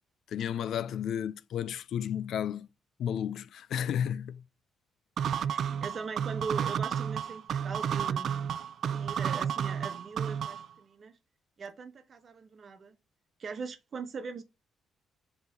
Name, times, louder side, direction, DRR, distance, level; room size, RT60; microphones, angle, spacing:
voice 1, 0.3-2.7 3.0-4.4, left 9 dB, 70° left, 0.4 m, -32 dB
sound 1, 5.2-10.7, right 8 dB, 65° right, 0.3 m, -31 dB
voice 2, 5.5-8.6 8.9-11.1 11.6-13.0 13.4-14.4, right 5 dB, 45° right, 1.1 m, -40 dB
5.7 x 4.1 x 5.2 m
cardioid pair, 90°, 0 cm